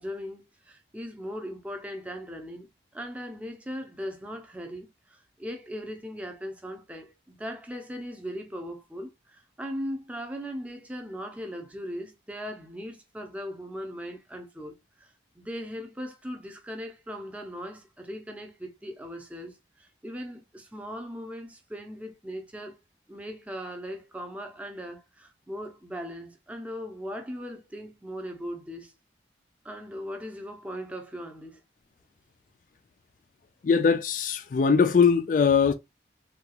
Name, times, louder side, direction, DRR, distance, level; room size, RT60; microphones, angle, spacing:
voice 1, 0.0-2.7 2.9-22.8 23.1-28.9 29.6-31.6, equal, 5° right, 0.6 m, -39 dB
voice 2, 33.6-35.7, left 6 dB, 45° left, 0.3 m, -21 dB
3.5 x 2.3 x 2.8 m
head